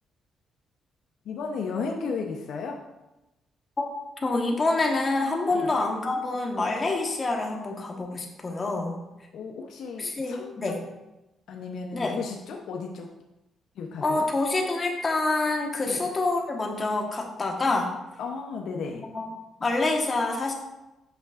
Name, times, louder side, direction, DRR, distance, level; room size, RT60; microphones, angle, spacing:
voice 1, 1.2-2.8 5.5-5.7 9.3-10.8 11.5-13.1 13.8-14.3 15.9-16.0 18.2-19.1, left 5 dB, 75° left, 1 dB, 0.7 m, -34 dB
voice 2, 4.2-8.9 10.0-10.7 11.9-12.2 14.0-17.9 19.1-19.2 19.6-20.5, left 2 dB, 30° left, 1 dB, 1.2 m, -26 dB
8.1 x 5.7 x 2.5 m, 0.97 s
cardioid pair, 95°, 0 cm